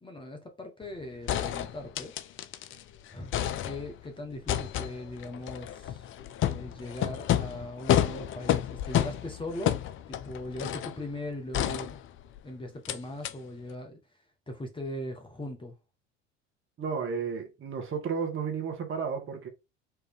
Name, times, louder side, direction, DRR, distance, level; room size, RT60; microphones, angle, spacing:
voice 1, 0.0-2.2 3.1-6.1 6.4-12.0 12.4-14.0 14.5-15.8, left 1 dB, 15° left, 1.2 m, -40 dB
sound 1, 0.8-0.9 1.3-2.8 3.1-4.1 4.5-11.0 11.5-12.4 12.9-13.0 13.2-13.3, left 11 dB, 35° left, 0.6 m, -30 dB
voice 2, 16.8-19.5, right 6 dB, 35° right, 1.6 m, -32 dB
4.5 x 3.2 x 3.6 m
hypercardioid pair, 75°, 34 cm